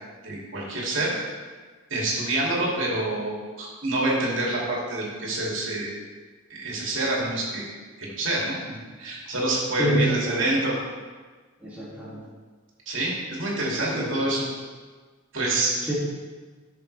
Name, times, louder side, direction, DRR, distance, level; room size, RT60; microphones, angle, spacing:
voice 1, 0.2-1.1 1.9-6.0 6.6-7.7 8.0-10.8 12.9-14.5 15.3-15.8, right 2 dB, 70° right, -4 dB, 2.6 m, -27 dB
voice 2, 9.8-10.4 11.6-12.2 13.7-14.1 15.9-16.0, right 1 dB, 10° right, -10 dB, 2.5 m, -27 dB
14.0 x 6.6 x 3.4 m, 1.4 s
head